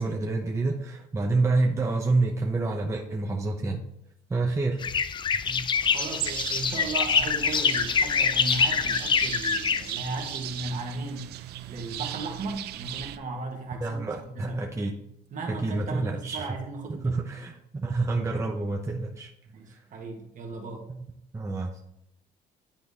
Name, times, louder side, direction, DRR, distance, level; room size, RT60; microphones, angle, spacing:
voice 1, 0.0-3.8 4.3-4.8 13.8-14.9 15.5-16.5 17.0-19.3 19.7-19.8 20.9-21.0 21.3-21.8, right 3 dB, 15° right, 0 dB, 0.8 m, -28 dB
sound 1, 4.8-10.4, left 6 dB, 30° left, 0.4 m, -25 dB
voice 2, 5.4-11.3 11.7-14.6 15.3-17.2 19.5-20.9, right 3 dB, 50° right, 2 dB, 1.6 m, -36 dB
sound 2, 5.7-13.2, right 13 dB, 75° right, 0.5 m, -37 dB
10.5 x 3.9 x 3.6 m, 0.78 s
cardioid pair, 110°, 17 cm